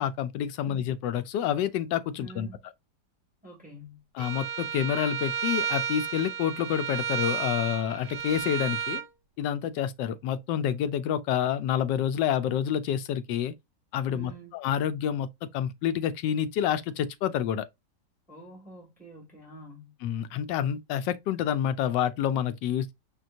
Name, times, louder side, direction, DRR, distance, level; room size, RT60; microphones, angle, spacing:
voice 1, 0.0-2.5 4.2-9.0 9.4-13.5 13.9-15.3 15.5-17.7 20.0-22.9, left 9 dB, 80° left, 1.2 m, -28 dB
voice 2, 2.1-2.6 3.4-4.1 14.1-14.6 18.3-19.9, right 1 dB, 5° right, 1.8 m, -47 dB
Bowed string instrument, 4.2-9.1, right 7 dB, 75° right, 1.1 m, -32 dB
5.4 x 2.9 x 2.5 m
omnidirectional pair, 1.9 m